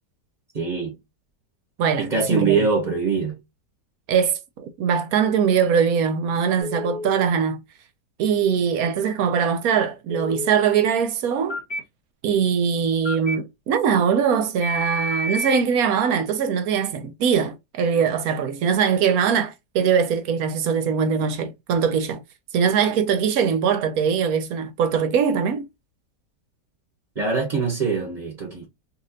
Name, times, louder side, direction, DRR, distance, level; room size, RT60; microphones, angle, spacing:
voice 1, 0.5-1.0 2.0-3.4 27.1-28.7, right 5 dB, 30° right, 1.0 m, -23 dB
voice 2, 1.8-2.7 4.1-7.6 8.2-11.6 12.2-22.2 22.5-25.7, right 7 dB, 70° right, 1.0 m, -22 dB
Telephone, 6.6-7.1 10.1-10.6 11.5-11.8 13.0-13.4 14.6-15.6, equal, 25° left, 0.6 m, -29 dB
4.1 x 2.5 x 2.6 m
omnidirectional pair, 1.8 m